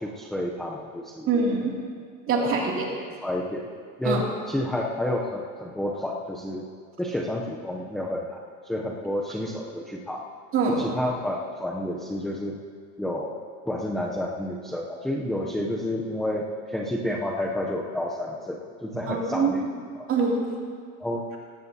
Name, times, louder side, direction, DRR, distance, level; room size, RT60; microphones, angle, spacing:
voice 1, 0.0-1.3 2.4-2.5 3.2-3.7 4.0-6.6 7.0-10.2 10.8-12.6 13.0-13.3 13.7-19.6 19.9-20.1 21.0-21.2, left 1 dB, ahead, -2 dB, 0.6 m, -30 dB
voice 2, 1.3-1.7 2.3-2.9 4.0-4.2 10.5-10.9 19.1-19.5 20.1-20.5, right 4 dB, 35° right, -2 dB, 2.6 m, -24 dB
18.0 x 16.0 x 2.8 m, 2.1 s
supercardioid pair, 155°, 38 cm